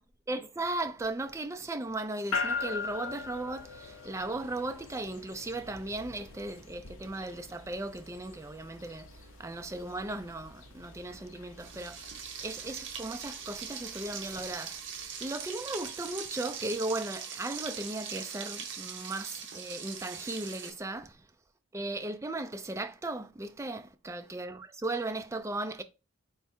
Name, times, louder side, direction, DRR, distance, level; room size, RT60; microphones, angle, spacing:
voice 1, 0.3-12.0 12.4-14.8 15.2-21.2 21.7-25.8, right 2 dB, 15° right, 0.3 m, -37 dB
sound 1, 2.3-16.6, left 4 dB, 75° left, 0.8 m, -42 dB
Frying (food), 11.6-20.7, right 7 dB, 60° right, 0.8 m, -41 dB
4.5 x 2.1 x 4.3 m
head